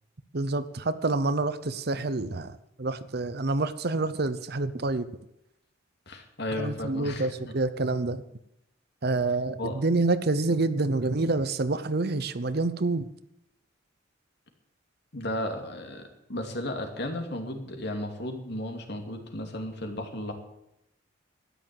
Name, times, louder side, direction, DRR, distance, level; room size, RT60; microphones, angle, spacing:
voice 1, 0.3-5.1 6.5-8.2 9.0-13.1, right 3 dB, 55° right, 13 dB, 0.8 m, -27 dB
voice 2, 6.1-7.5 9.6-9.8 15.1-20.3, left 1 dB, 60° left, 4 dB, 2.6 m, -34 dB
13.0 x 10.5 x 7.7 m, 0.81 s
head